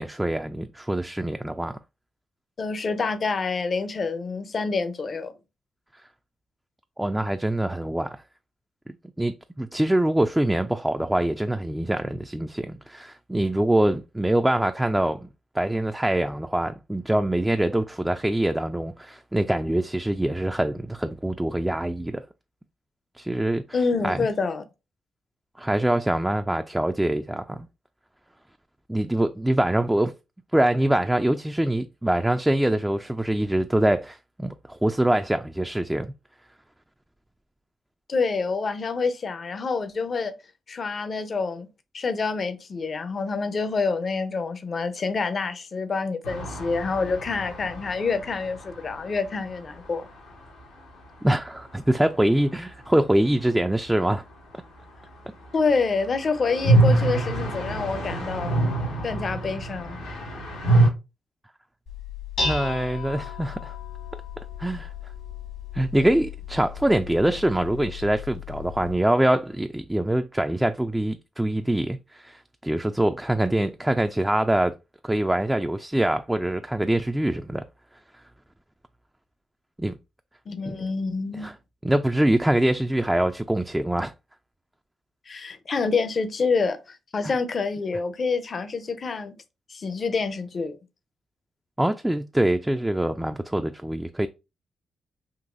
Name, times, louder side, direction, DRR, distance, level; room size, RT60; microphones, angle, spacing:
voice 1, 0.0-1.8 7.0-8.2 9.2-15.3 15.5-22.2 23.2-23.6 24.0-24.3 25.6-27.7 28.9-30.1 30.5-36.1 51.2-54.2 56.9-57.0 62.4-63.7 64.6-64.9 65.7-74.8 75.0-77.6 79.8-80.0 80.7-80.8 81.3-81.5 81.8-84.1 87.2-87.3 91.8-94.3, right 1 dB, 10° right, 0.3 m, -24 dB
voice 2, 2.6-5.3 23.7-24.6 38.1-40.3 40.7-41.7 41.9-50.1 55.5-58.6 59.0-60.0 80.5-81.5 85.3-89.3 89.7-90.8, left 4 dB, 50° left, 0.6 m, -27 dB
sound 1, 46.2-50.0 50.3-50.4 50.6-50.7 55.7-60.9, right 2 dB, 90° left, 0.9 m, -25 dB
Dishes pots and pans, 61.9-68.9, left 5 dB, 70° left, 1.3 m, -35 dB
3.9 x 2.6 x 2.5 m
hypercardioid pair, 45°, 0 cm